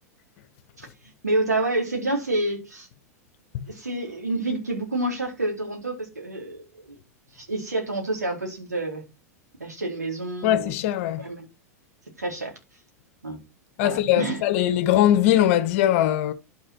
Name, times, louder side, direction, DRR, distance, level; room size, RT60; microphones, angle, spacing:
voice 1, 1.2-2.9 3.7-7.0 7.3-9.0 9.6-10.7 11.2-11.4 12.2-12.5 13.2-13.4 13.8-14.4, right 2 dB, 85° right, 4.3 m, -28 dB
voice 2, 10.4-11.3 13.8-16.3, left 12 dB, 55° left, 1.4 m, -21 dB
11.0 x 6.5 x 4.6 m
figure-of-eight pair, 90°, 9 cm